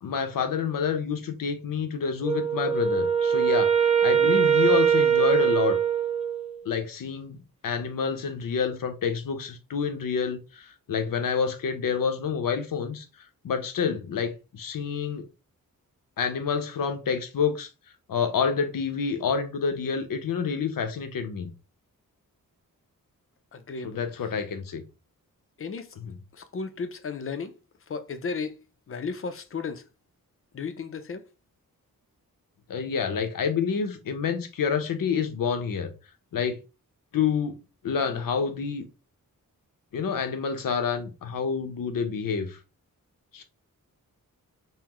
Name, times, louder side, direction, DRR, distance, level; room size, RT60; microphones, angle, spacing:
voice 1, 0.0-5.8 6.6-13.1 13.4-15.3 16.2-17.7 18.1-21.5 23.8-24.8 26.0-26.1 32.7-35.9 36.3-36.6 37.1-37.6 37.8-38.9 39.9-42.6 43.3-43.4, left 6 dB, 70° left, 0.7 m, -28 dB
Wind instrument woodwind instrument, 2.2-6.6, right 8 dB, 20° right, 0.4 m, -22 dB
voice 2, 23.5-24.0 25.6-26.0 26.3-27.6 27.9-29.8 30.5-31.2, left 5 dB, 40° left, 0.5 m, -34 dB
5.6 x 2.1 x 3.0 m
wide cardioid pair, 170°, 35 cm